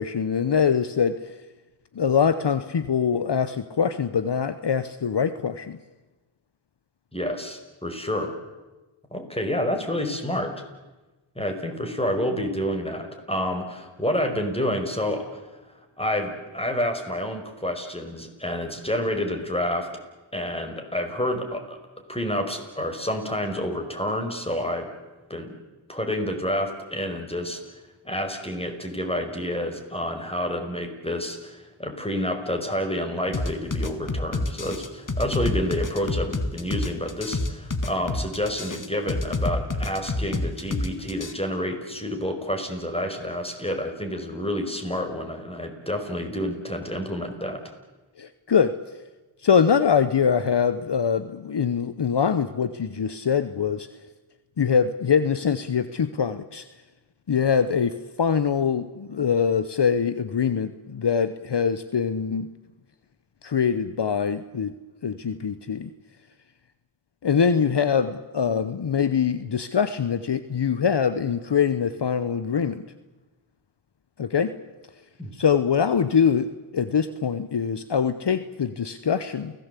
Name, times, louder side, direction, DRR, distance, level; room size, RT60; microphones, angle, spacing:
voice 1, 0.0-1.4 1.9-5.8 48.2-48.8 49.4-53.9 54.6-56.7 57.3-62.5 63.4-64.7 65.0-65.9 67.2-72.8 74.2-74.6 75.3-79.5, left 7 dB, 60° left, 13 dB, 1.0 m, -23 dB
voice 2, 7.1-8.4 9.1-10.5 11.4-15.4 16.0-19.9 20.3-21.8 22.1-24.9 25.3-25.5 25.9-27.6 28.0-47.6 75.2-75.3, left 1 dB, 10° left, 5 dB, 5.3 m, -29 dB
sound 1, 33.3-41.3, left 2 dB, 40° left, 2.1 m, -27 dB
29.0 x 17.5 x 8.4 m, 1.2 s
cardioid pair, 45°, 46 cm